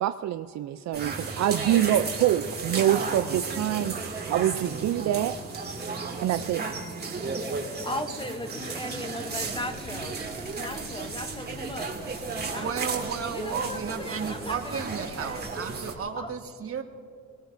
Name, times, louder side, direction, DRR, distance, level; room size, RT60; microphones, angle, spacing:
voice 1, 0.0-5.4 6.2-6.7, right 12 dB, 65° right, 10 dB, 0.5 m, -26 dB
sound 1, 0.9-15.9, right 4 dB, 35° right, 2.2 m, -34 dB
voice 2, 7.8-10.2 10.5-11.9 12.5-13.1 13.3-15.5 16.2-16.3, left 1 dB, 15° left, 8 dB, 0.8 m, -37 dB
Rain, 9.3-16.0, left 3 dB, 85° left, 3.2 m, -49 dB
voice 3, 12.3-16.8, right 6 dB, 50° right, 5 dB, 1.4 m, -33 dB
23.0 x 20.5 x 2.6 m, 2.5 s
cardioid pair, 90°, 30 cm